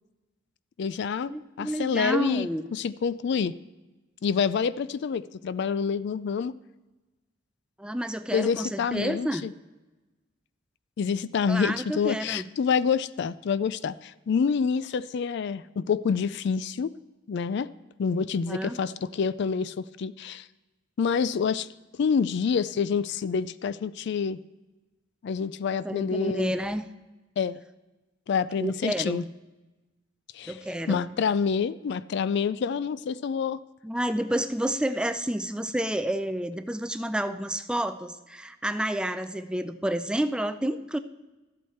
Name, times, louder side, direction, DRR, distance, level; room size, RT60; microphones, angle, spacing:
voice 1, 0.8-3.5 4.2-6.5 8.3-9.5 11.0-16.9 17.3-17.7 18.0-20.5 21.0-21.7 22.0-24.4 25.2-26.5 27.4-27.6 28.3-29.2 30.3-30.6 30.9-33.6, left 6 dB, 60° left, 17 dB, 0.3 m, -27 dB
voice 2, 1.3-2.6 7.8-9.4 11.5-12.5 18.5-18.8 25.7-26.9 28.6-29.3 30.5-31.1 33.8-41.0, right 1 dB, 5° right, 10 dB, 0.4 m, -30 dB
13.5 x 8.4 x 4.4 m, 1.1 s
head